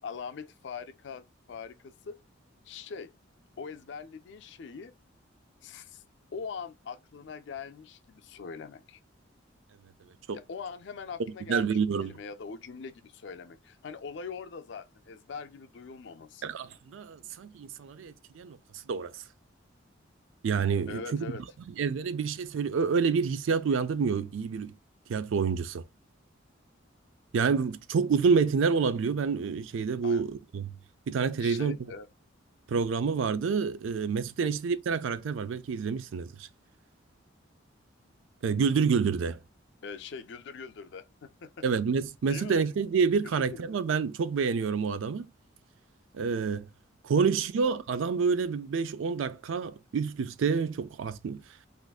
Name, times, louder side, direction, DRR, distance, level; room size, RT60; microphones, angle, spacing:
voice 1, 0.0-2.2 2.6-3.1 3.6-4.9 5.6-6.0 6.3-9.0 10.3-16.5 20.9-21.4 30.0-30.2 31.4-32.1 34.4-34.5 39.8-41.6 42.3-42.6 43.2-43.9 47.2-47.3, left 5 dB, 60° left, 0.4 m, -42 dB
voice 2, 11.5-12.1 16.4-18.6 18.9-19.1 20.4-21.3 21.8-24.7 25.1-25.8 27.3-30.7 31.1-31.8 32.7-36.5 38.4-39.4 41.6-45.3 46.1-46.7 47.0-51.4, right 5 dB, 80° right, 0.4 m, -28 dB
3.4 x 2.6 x 2.3 m
head